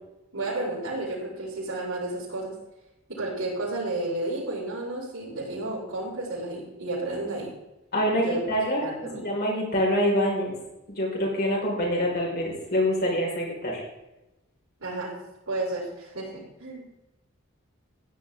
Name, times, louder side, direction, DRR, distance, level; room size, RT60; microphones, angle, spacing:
voice 1, 0.3-2.5 3.1-7.5 8.2-8.4 8.7-9.2 14.8-15.1 15.5-16.9, right 2 dB, 75° right, -11 dB, 5.7 m, -32 dB
voice 2, 7.9-8.8 9.1-10.5 10.9-13.8, equal, 45° left, -2 dB, 4.9 m, -25 dB
15.5 x 11.0 x 3.7 m, 0.98 s
head